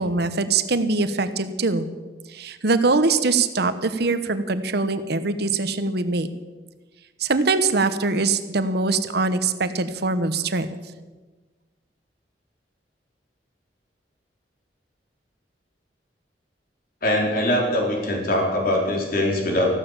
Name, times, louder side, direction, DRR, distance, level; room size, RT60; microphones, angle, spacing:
voice 1, 0.0-1.9 2.3-6.3 7.2-10.7, right 3 dB, 65° right, 11 dB, 1.1 m, -22 dB
voice 2, 17.0-19.7, left 1 dB, 55° left, 0 dB, 4.1 m, -22 dB
15.0 x 12.5 x 7.3 m, 1.3 s
head